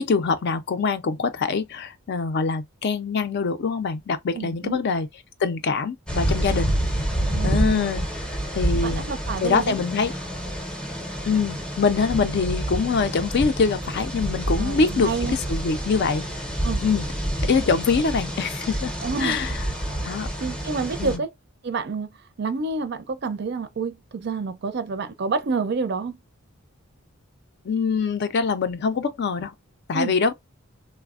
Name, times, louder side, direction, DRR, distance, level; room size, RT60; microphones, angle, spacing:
voice 1, 0.0-5.1 5.4-6.7 7.4-9.0 9.4-10.1 11.3-16.2 16.8-17.0 17.4-18.9 19.2-19.5 20.0-20.3 21.0-21.2 27.7-29.5 29.9-30.3, left 5 dB, 50° left, 0.4 m, -24 dB
voice 2, 4.3-4.8 7.3-7.9 8.7-9.8 14.6-15.3 16.6-16.8 19.0-19.4 20.4-21.3 21.6-22.1 22.4-26.2 29.9-30.2, right 4 dB, 50° right, 0.4 m, -28 dB
sound 1, 6.1-21.2, right 1 dB, 5° left, 0.6 m, -28 dB
3.2 x 2.1 x 2.3 m
head